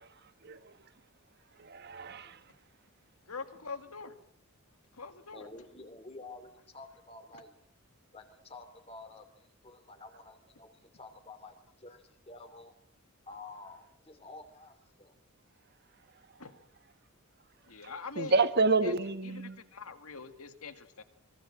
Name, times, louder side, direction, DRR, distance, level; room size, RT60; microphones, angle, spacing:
voice 1, 0.4-0.7 1.6-2.4 18.2-19.6, right 3 dB, 45° right, 11 dB, 1.6 m, -29 dB
voice 2, 3.3-4.2 4.9-5.5 16.4-16.6 17.7-18.5 18.8-18.9 19.2-19.4 19.7-21.0, left 4 dB, 75° left, 9 dB, 2.1 m, -43 dB
voice 3, 5.3-7.5 8.1-12.7 13.3-15.2, left 3 dB, 25° left, 9 dB, 3.0 m, -50 dB
25.0 x 23.5 x 7.6 m, 0.67 s
head